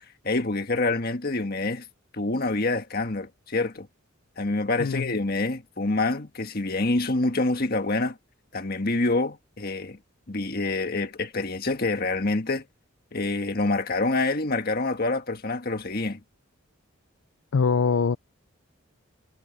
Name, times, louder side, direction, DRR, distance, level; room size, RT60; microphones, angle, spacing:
voice 1, 0.2-1.8 2.1-3.9 4.4-8.2 8.5-10.0 10.3-12.6 13.1-16.2, left 2 dB, 45° left, 1.7 m, -26 dB
voice 2, 17.5-18.2, left 5 dB, 65° left, 0.4 m, -22 dB
head